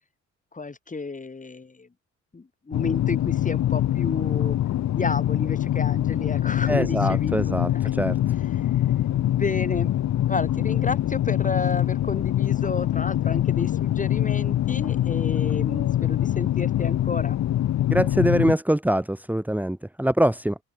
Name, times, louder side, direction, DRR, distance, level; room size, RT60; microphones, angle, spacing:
voice 1, 0.5-1.9 2.3-4.6 4.9-7.9 8.4-8.8 9.2-9.9 10.3-17.4, left 4 dB, 25° left, 4.8 m, -31 dB
sound 1, 2.7-18.5, left 12 dB, 65° left, 1.1 m, -24 dB
voice 2, 6.7-8.2 17.9-20.6, right 1 dB, 5° right, 3.1 m, -23 dB
open air
cardioid pair, 90°, 30 cm